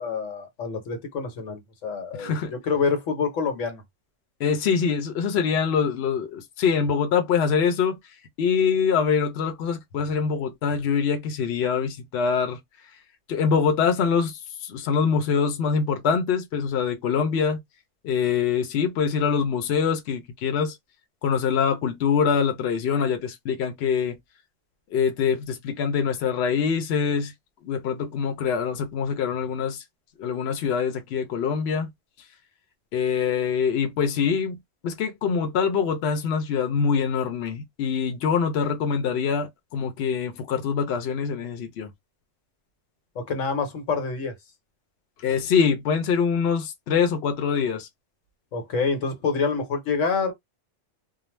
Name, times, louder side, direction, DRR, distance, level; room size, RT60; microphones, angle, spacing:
voice 1, 0.0-3.8 43.1-44.3 48.5-50.3, left 5 dB, 90° left, 1.3 m, -27 dB
voice 2, 2.2-2.5 4.4-8.0 8.4-12.6 13.3-17.6 18.0-20.8 21.2-24.2 24.9-27.3 27.6-29.8 30.2-31.9 32.9-34.6 34.8-41.9 45.2-47.9, left 6 dB, 65° left, 0.8 m, -24 dB
2.5 x 2.1 x 3.1 m
omnidirectional pair, 1.3 m